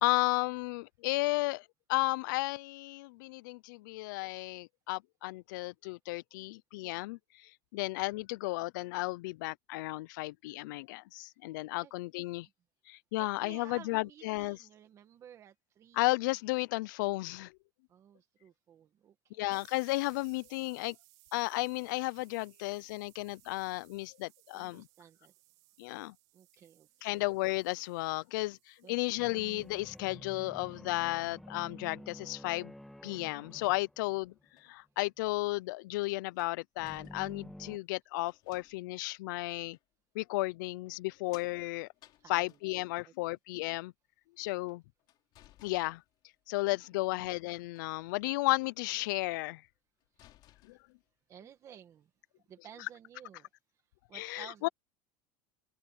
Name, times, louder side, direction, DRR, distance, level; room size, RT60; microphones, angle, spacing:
voice 1, 0.0-7.2 7.7-12.5 12.9-14.6 16.0-17.5 19.4-21.0 21.3-24.8 25.8-26.1 27.0-32.7 33.0-34.3 34.6-39.8 40.1-41.9 42.3-43.9 44.4-44.8 45.6-46.0 46.5-49.6 50.7-50.8 54.1-54.7, left 21 dB, 85° left, 0.5 m, -33 dB
voice 2, 13.2-16.0 17.9-19.5 24.5-25.3 26.3-27.3 28.8-29.3 42.2-42.6 43.0-43.1 47.1-47.3 51.3-52.1 52.5-53.5 54.1-54.7, right 9 dB, 30° right, 1.8 m, -55 dB
sound 1, 19.5-30.1, right 21 dB, 70° right, 2.3 m, -65 dB
sound 2, 29.2-34.6 36.8-37.8, left 1 dB, ahead, 2.4 m, -50 dB
sound 3, 33.2-34.8 35.6-35.7 36.3-37.5 38.2-39.1 39.7-39.9 40.8-43.2 44.3-46.4 47.6-48.5 48.9-49.2 49.6-49.7 50.0-51.1, left 14 dB, 45° left, 3.6 m, -63 dB
open air
cardioid pair, 160°, 10 cm